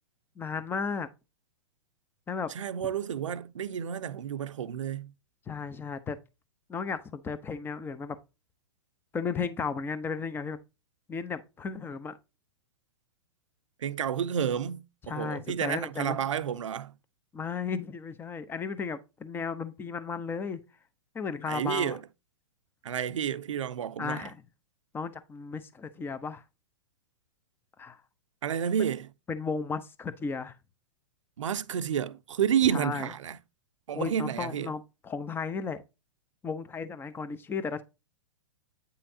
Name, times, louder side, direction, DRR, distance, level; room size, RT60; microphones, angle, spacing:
voice 1, 0.4-1.1 2.3-2.5 5.5-6.2 6.7-8.2 9.1-10.6 11.1-12.2 15.1-16.2 17.3-20.6 21.1-22.0 24.0-24.4 24.9-26.4 27.8-28.0 29.3-30.6 32.7-33.1 33.9-35.8 36.4-37.8, left 5 dB, 15° left, 0.8 m, -34 dB
voice 2, 2.5-5.1 13.8-16.9 21.5-22.0 22.8-24.2 28.4-29.1 31.4-33.4 33.9-34.7, right 9 dB, 85° right, 0.7 m, -30 dB
8.9 x 5.7 x 2.8 m
hypercardioid pair, 135°, 16 cm